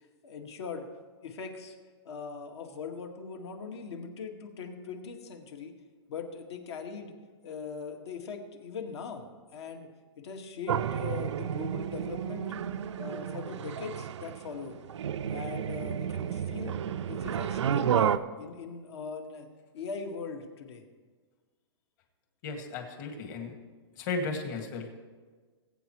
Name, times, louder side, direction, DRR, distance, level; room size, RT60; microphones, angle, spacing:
voice 1, 0.2-0.9 1.2-1.8 2.0-5.7 6.1-7.1 7.4-9.9 10.2-12.5 13.0-14.8 15.3-16.8 17.1-19.5 19.7-20.8, left 5 dB, 65° left, 3 dB, 1.8 m, -40 dB
sound 1, 10.7-18.2, right 9 dB, 90° right, 0.5 m, -31 dB
voice 2, 22.4-23.5 24.0-24.9, left 3 dB, 40° left, 4 dB, 2.0 m, -35 dB
20.5 x 8.6 x 3.1 m, 1.5 s
hypercardioid pair, 155°, 15 cm